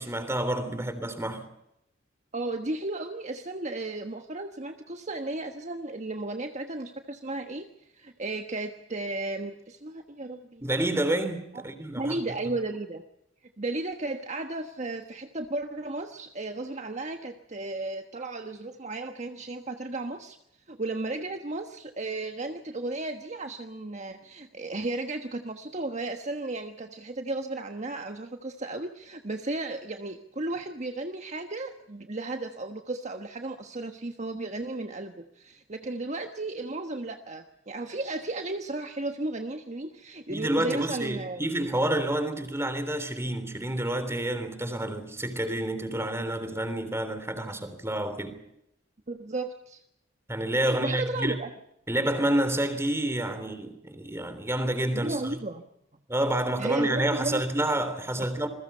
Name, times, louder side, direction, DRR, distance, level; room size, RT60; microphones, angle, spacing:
voice 1, 0.0-1.5 10.6-12.1 40.3-48.4 50.3-51.3 51.9-55.4 56.1-58.5, right 1 dB, 15° right, 3.4 m, -29 dB
voice 2, 2.3-10.6 11.5-11.6 11.9-13.0 13.6-20.4 20.7-41.4 49.1-49.8 50.7-51.5 54.9-55.7 56.6-57.4, right 2 dB, 40° right, 1.3 m, -34 dB
28.0 x 22.0 x 5.6 m
head